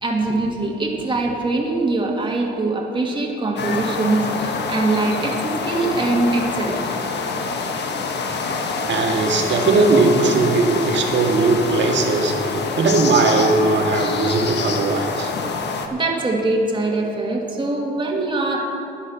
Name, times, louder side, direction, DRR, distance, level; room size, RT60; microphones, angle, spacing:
voice 1, 0.0-6.9 15.9-18.6, right 2 dB, 25° right, -1 dB, 2.0 m, -22 dB
sound 1, 3.6-15.9, left 4 dB, 60° left, 1.2 m, -26 dB
voice 2, 8.9-15.3, right 3 dB, 65° right, 2 dB, 1.9 m, -19 dB
12.0 x 9.7 x 6.2 m, 2.9 s
cardioid pair, 90°, 20 cm